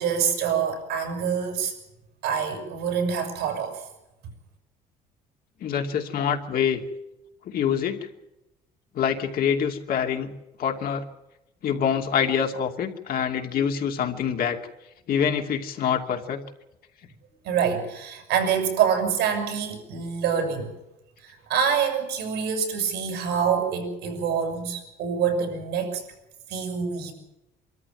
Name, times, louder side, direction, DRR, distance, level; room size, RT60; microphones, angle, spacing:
voice 1, 0.0-1.7 2.2-3.8 17.4-20.7 21.2-26.0 26.5-27.1, right 7 dB, 85° right, 4 dB, 7.2 m, -26 dB
voice 2, 5.6-6.8 7.5-8.1 8.9-10.3 10.6-11.0 11.6-14.6 15.1-16.4, left 8 dB, 60° left, 3 dB, 2.7 m, -25 dB
25.0 x 13.5 x 9.3 m, 0.94 s
cardioid pair, 110°, 17 cm